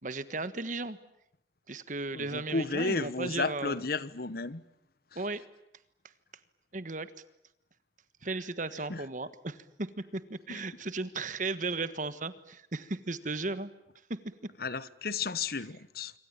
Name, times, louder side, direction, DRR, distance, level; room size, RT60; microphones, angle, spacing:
voice 1, 0.0-1.0 1.7-3.8 5.1-5.4 6.7-7.1 8.2-9.9 10.1-13.7 14.1-14.5, right 3 dB, 45° right, 1.5 m, -35 dB
voice 2, 2.1-4.6 5.1-5.2 8.9-9.0 10.5-10.6 14.6-16.1, left 3 dB, 55° left, 1.1 m, -33 dB
26.5 x 25.0 x 8.9 m
head